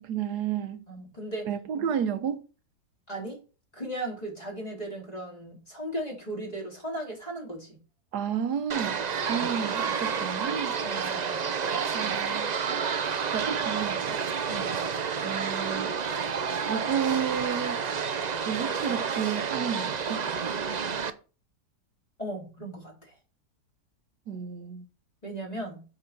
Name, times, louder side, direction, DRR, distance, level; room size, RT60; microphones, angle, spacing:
voice 1, 0.0-0.8 1.4-2.4 8.1-10.8 11.7-12.5 13.3-14.2 15.2-15.9 16.7-17.8 18.4-20.3 24.3-24.9, right 8 dB, 90° right, 1.5 m, -31 dB
voice 2, 0.9-1.5 3.1-3.4 3.7-7.8 10.8-11.4 14.5-14.8 22.2-23.1 25.2-25.8, right 1 dB, 25° left, 3.7 m, -37 dB
sound 1, 8.7-21.1, right 6 dB, 50° right, 0.5 m, -30 dB
8.1 x 5.6 x 6.7 m
omnidirectional pair, 1.7 m